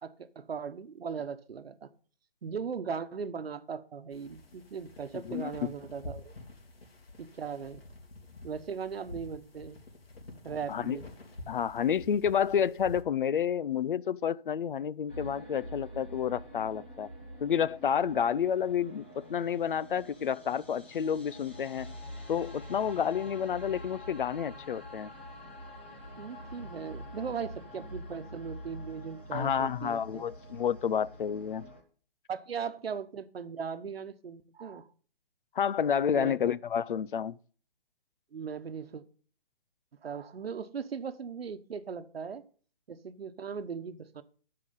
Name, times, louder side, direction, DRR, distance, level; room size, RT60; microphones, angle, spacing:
voice 1, 0.0-1.9 2.4-6.3 7.2-7.8 8.4-9.8 10.4-11.0 26.2-30.2 32.3-34.9 36.1-36.4 38.3-39.0 40.0-42.4 42.9-44.2, right 6 dB, 90° right, 1.1 m, -38 dB
sound 1, 4.1-13.0, left 2 dB, 80° left, 3.0 m, -48 dB
voice 2, 11.5-17.1 17.4-21.9 22.3-25.1 29.3-31.7 35.6-37.4, left 8 dB, 60° left, 0.5 m, -30 dB
sound 2, 15.1-31.8, equal, 10° left, 0.5 m, -46 dB
13.5 x 4.9 x 5.4 m
hypercardioid pair, 175°, 29 cm